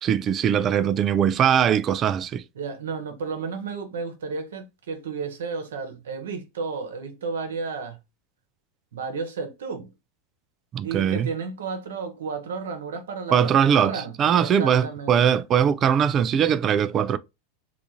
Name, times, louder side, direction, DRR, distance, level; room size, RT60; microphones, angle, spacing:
voice 1, 0.0-2.4 10.7-11.3 13.3-17.2, right 8 dB, 35° right, 0.4 m, -21 dB
voice 2, 2.5-8.0 8.9-9.9 10.8-15.4, right 5 dB, 70° right, 1.0 m, -32 dB
3.5 x 2.5 x 2.7 m
hypercardioid pair, 90°, 0 cm